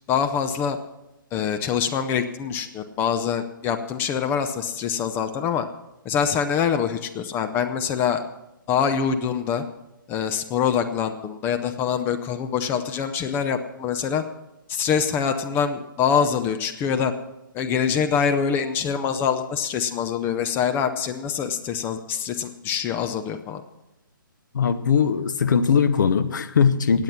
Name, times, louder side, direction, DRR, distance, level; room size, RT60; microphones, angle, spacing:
voice 1, 0.1-0.8 1.3-5.6 6.0-8.2 8.7-9.6 10.1-14.2 14.7-17.1 17.5-23.6, left 7 dB, 20° left, 7 dB, 0.7 m, -24 dB
voice 2, 24.5-27.0, left 6 dB, 60° left, 10 dB, 1.0 m, -20 dB
16.5 x 8.8 x 6.1 m, 0.91 s
figure-of-eight pair, 135°, 12 cm